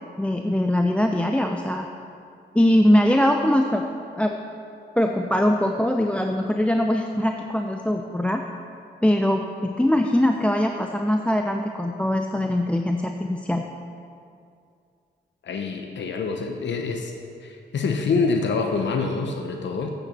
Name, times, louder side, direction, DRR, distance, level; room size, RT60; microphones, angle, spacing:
voice 1, 0.2-1.9 2.5-3.8 4.2-4.4 5.0-8.4 9.0-13.6, left 1 dB, 5° left, 4 dB, 0.5 m, -22 dB
voice 2, 15.4-17.1 17.4-19.9, left 4 dB, 75° left, 4 dB, 0.8 m, -26 dB
8.2 x 6.8 x 7.0 m, 2.4 s
cardioid pair, 60°, 19 cm